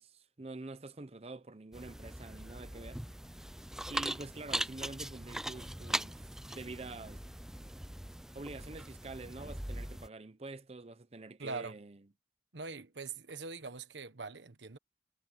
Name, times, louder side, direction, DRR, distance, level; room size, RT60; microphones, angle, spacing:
voice 1, 0.0-3.0 3.9-6.2 6.6-7.2 8.3-12.0, right 2 dB, 35° right, 0.7 m, -46 dB
sound 1, 1.7-10.1, right 1 dB, 5° right, 0.4 m, -40 dB
voice 2, 11.4-11.8 12.5-14.8, right 4 dB, 90° right, 1.3 m, -42 dB
head